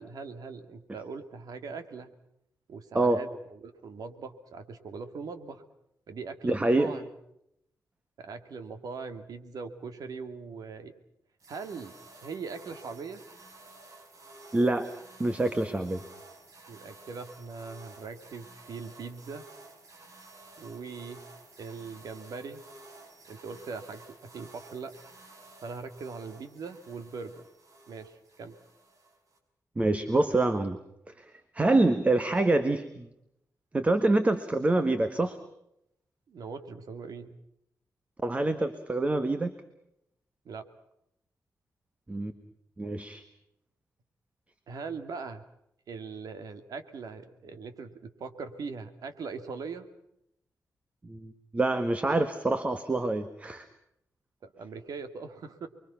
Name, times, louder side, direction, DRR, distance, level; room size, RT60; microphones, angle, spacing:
voice 1, 0.0-2.1 2.7-5.6 6.1-7.1 8.2-10.9 11.5-12.0 12.2-13.2 16.7-19.5 20.6-21.2 21.6-22.6 23.3-24.9 25.6-27.4 27.9-28.6 36.3-37.4 40.4-40.6 44.7-45.4 45.9-49.9 54.4-55.7, right 4 dB, 85° right, 8 dB, 2.5 m, -41 dB
voice 2, 6.4-6.9 14.5-14.9 15.2-16.0 29.8-30.8 31.2-31.3 31.5-33.1 33.7-35.4 38.2-39.5 42.1-42.3 42.8-43.2 51.0-53.7, right 2 dB, 20° right, 9 dB, 1.5 m, -26 dB
sound 1, 11.4-29.4, right 2 dB, 60° right, 5.4 m, -52 dB
29.5 x 23.0 x 5.9 m, 0.78 s
wide cardioid pair, 155°, 6 cm